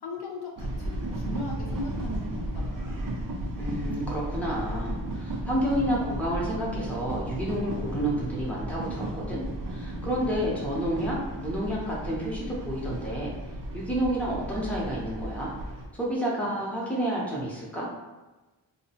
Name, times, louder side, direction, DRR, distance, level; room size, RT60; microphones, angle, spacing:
voice 1, 0.0-3.1, left 2 dB, 60° left, 0 dB, 0.5 m, -38 dB
sound 1, 0.6-15.8, right 1 dB, 50° right, 0.5 m, -34 dB
voice 2, 3.6-9.4 9.7-13.3 13.7-15.5 15.9-17.9, equal, 5° left, -5 dB, 0.6 m, -30 dB
2.6 x 2.0 x 2.7 m, 1.1 s
wide cardioid pair, 90°, 44 cm